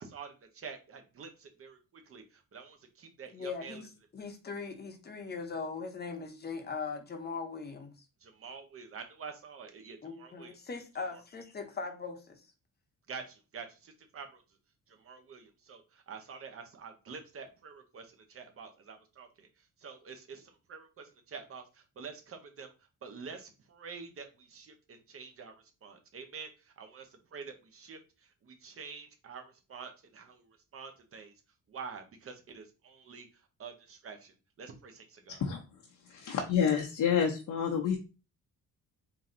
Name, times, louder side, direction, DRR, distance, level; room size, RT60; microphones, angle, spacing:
voice 1, 0.0-3.8 8.2-10.6 11.1-11.2 13.1-14.4 14.9-19.5 19.8-22.7 23.0-25.5 25.8-28.0 28.4-31.3 31.7-33.3 33.6-35.4, right 5 dB, 45° right, 0.9 m, -47 dB
voice 2, 3.3-7.9 10.0-12.4, left 4 dB, 30° left, 0.8 m, -40 dB
voice 3, 36.1-38.0, left 7 dB, 65° left, 0.9 m, -28 dB
3.9 x 2.8 x 3.8 m
cardioid pair, 140°, 33 cm